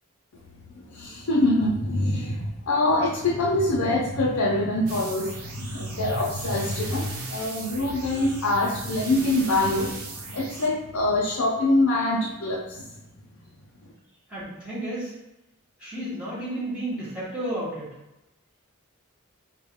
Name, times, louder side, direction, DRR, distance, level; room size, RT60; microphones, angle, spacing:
voice 1, 0.7-12.9 13.8-13.9, left 2 dB, 70° left, -3 dB, 0.6 m, -24 dB
sound 1, 4.9-10.7, right 4 dB, 80° right, 0.8 m, -39 dB
voice 2, 14.3-15.1 15.8-17.9, right 1 dB, 5° right, -10 dB, 1.2 m, -32 dB
4.3 x 2.5 x 3.6 m, 0.92 s
head